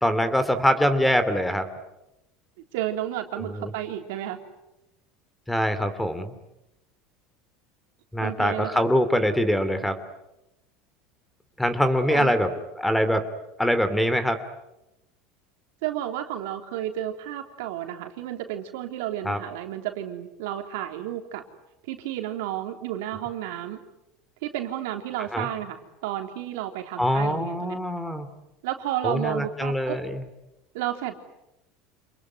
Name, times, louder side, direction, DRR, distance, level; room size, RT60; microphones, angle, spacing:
voice 1, 0.0-1.7 3.4-3.7 5.5-6.3 8.1-10.0 11.6-12.5 12.8-13.2 13.6-14.4 19.2-19.4 25.3-25.5 27.0-28.3 29.0-30.2, equal, 5° left, 11 dB, 2.7 m, -23 dB
voice 2, 2.7-4.4 8.2-8.8 12.1-12.3 15.8-21.4 21.9-23.8 24.4-27.8 28.6-30.0 30.7-31.1, right 12 dB, 80° right, 5 dB, 3.4 m, -32 dB
28.0 x 21.5 x 9.7 m, 0.91 s
supercardioid pair, 115°, 0 cm